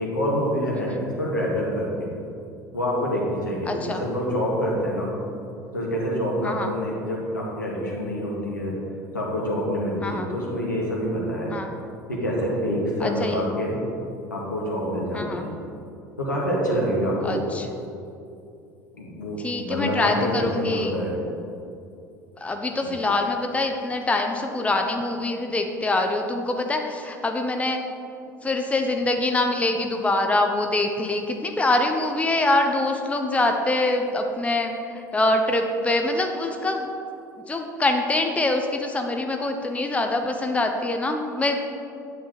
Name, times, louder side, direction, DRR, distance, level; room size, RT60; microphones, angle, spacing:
voice 1, 0.0-2.1 2.7-5.1 5.7-8.8 9.1-11.6 12.1-13.8 14.3-15.5 16.2-17.4 18.9-21.2 22.8-22.9, equal, 80° left, -3 dB, 2.0 m, -26 dB
voice 2, 3.7-4.0 6.4-6.7 10.0-10.3 11.5-11.7 13.0-13.4 15.1-15.4 17.2-17.6 19.4-21.0 22.4-27.8 28.4-36.9 37.4-41.6, left 2 dB, 15° left, 4 dB, 0.8 m, -24 dB
10.0 x 8.7 x 4.1 m, 2.6 s
figure-of-eight pair, 65°, 10 cm